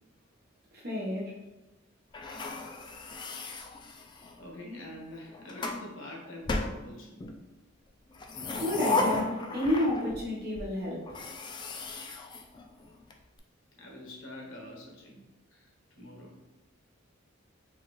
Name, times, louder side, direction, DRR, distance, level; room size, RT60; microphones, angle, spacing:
voice 1, 0.7-1.4 8.6-11.1, left 1 dB, 55° right, -5 dB, 1.0 m, -30 dB
sound 1, 2.1-4.4 5.1-5.8 6.5-7.4 8.1-10.3 10.5-10.7 11.1-13.1, left 3 dB, 25° left, 0.3 m, -35 dB
voice 2, 4.4-7.2 13.8-15.2 15.5-16.4, left 1 dB, 90° left, -2 dB, 1.1 m, -45 dB
3.9 x 2.4 x 3.0 m, 1.0 s
head